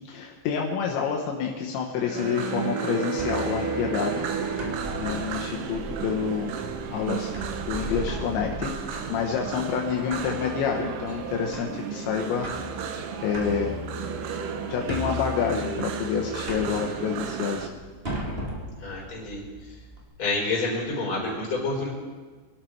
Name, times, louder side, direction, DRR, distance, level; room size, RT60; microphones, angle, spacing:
voice 1, 0.1-4.3 5.0-6.5 6.9-7.3 7.7-12.5 13.2-13.8 14.7-17.7, left 7 dB, 80° left, 1 dB, 3.3 m, -28 dB
Bowed string instrument, 2.0-6.3, right 5 dB, 40° right, 2.6 m, -34 dB
sound 1, 2.2-17.7, right 7 dB, 90° right, 1.8 m, -34 dB
sound 2, 3.1-20.0, left 1 dB, 70° right, 0.5 m, -38 dB
voice 2, 18.8-19.4 20.2-21.9, left 3 dB, 30° left, -4 dB, 4.9 m, -28 dB
24.0 x 12.0 x 4.6 m, 1.4 s
omnidirectional pair, 5.3 m